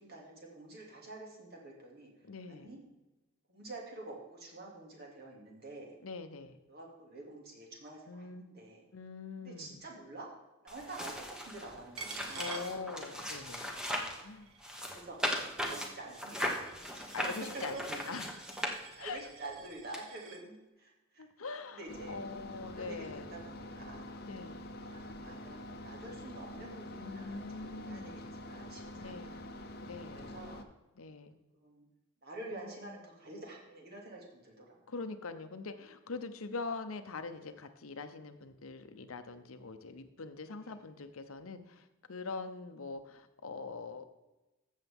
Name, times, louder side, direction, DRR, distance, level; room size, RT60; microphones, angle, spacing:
voice 1, 0.0-2.1 2.4-2.8 3.5-5.9 6.7-8.8 9.4-10.3 10.6-12.6 14.8-15.3 15.6-17.1 17.5-17.6 19.0-21.2 21.7-22.2 22.7-24.2 24.8-29.4 30.0-30.6 31.5-31.9 32.2-34.7, right 2 dB, 50° right, -2 dB, 2.5 m, -48 dB
voice 2, 2.3-2.7 6.0-6.6 8.1-8.5 8.9-9.8 12.3-13.7 14.2-14.5 17.1-18.3 19.0-19.2 21.2-23.3 24.2-24.6 27.0-28.2 28.9-29.4 29.8-30.3 30.9-31.4 32.5-32.9 34.9-44.0, left 4 dB, 85° left, 9 dB, 0.8 m, -43 dB
sound 1, 10.7-14.2 14.6-19.2 19.9-20.0, equal, 5° right, 1.1 m, -38 dB
Coin (dropping), 12.0-13.5 13.8-20.4, right 6 dB, 85° right, 1.0 m, -51 dB
sound 2, 21.9-30.6, left 1 dB, 50° left, 0.8 m, -46 dB
14.0 x 7.3 x 3.6 m, 1.1 s
head